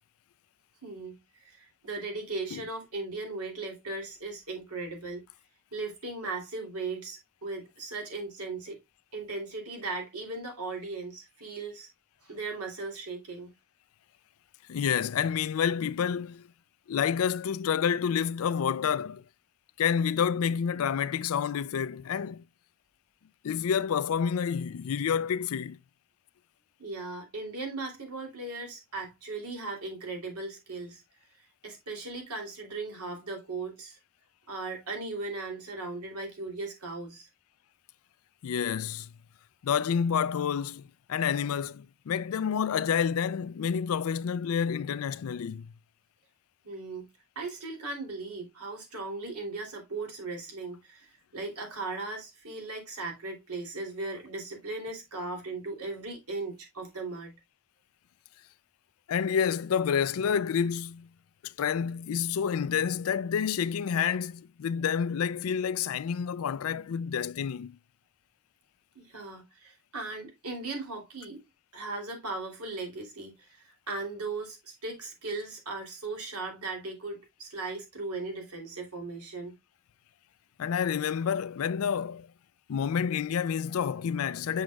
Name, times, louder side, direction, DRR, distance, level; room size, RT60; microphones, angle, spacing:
voice 1, 0.8-1.2 1.4-5.2 5.7-8.8 9.1-11.9 12.2-13.5 26.8-31.0 31.6-34.0 34.5-37.3 46.6-47.1 47.3-57.3 68.9-71.4 71.7-79.5, right 3 dB, 85° right, 2.9 m, -37 dB
voice 2, 14.7-16.5 16.9-19.2 19.8-22.4 23.4-25.8 38.4-39.1 39.6-45.7 59.1-61.1 61.4-67.8 80.6-82.3 82.7-84.6, left 7 dB, 70° left, 0.4 m, -29 dB
7.8 x 6.3 x 2.2 m
head